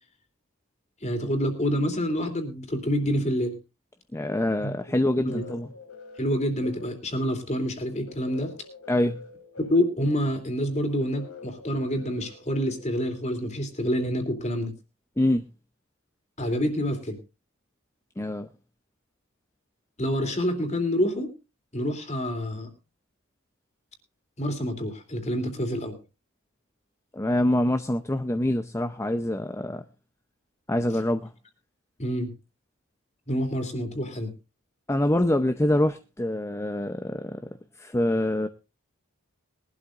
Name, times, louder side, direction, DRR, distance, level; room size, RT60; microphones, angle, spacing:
voice 1, 1.0-3.5 4.6-4.7 5.2-5.4 6.2-8.5 9.6-14.7 16.4-17.2 20.0-21.3 21.7-22.7 24.4-26.0 32.0-32.3 33.3-34.3, equal, 30° left, 2.9 m, -27 dB
voice 2, 4.1-5.7 8.9-9.2 15.2-15.4 18.2-18.5 27.1-29.8 30.7-31.3 34.9-37.4 37.8-38.5, left 1 dB, 15° left, 0.6 m, -25 dB
sound 1, 4.8-13.5, left 4 dB, 75° left, 2.9 m, -47 dB
21.5 x 12.0 x 2.5 m
head